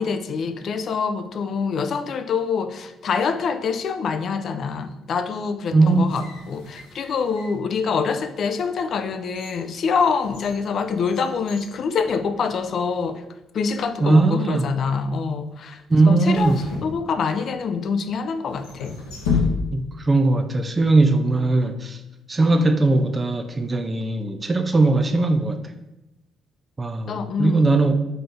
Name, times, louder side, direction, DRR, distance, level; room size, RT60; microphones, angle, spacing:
voice 1, 0.0-13.2 13.5-19.0 27.1-27.7, left 5 dB, 55° left, 9 dB, 0.4 m, -25 dB
voice 2, 5.7-6.1 14.0-14.6 15.9-16.6 19.7-22.0 22.3-25.6 26.8-28.0, right 2 dB, 30° right, 7 dB, 0.4 m, -19 dB
sound 1, 5.9-7.7 8.3-8.4 9.0-12.7 13.0-13.1 13.9-14.3 16.3-17.6 18.5-20.0 20.3-20.4, left 5 dB, 80° left, 0.8 m, -32 dB
3.9 x 3.7 x 3.4 m, 0.95 s
hypercardioid pair, 45°, 0 cm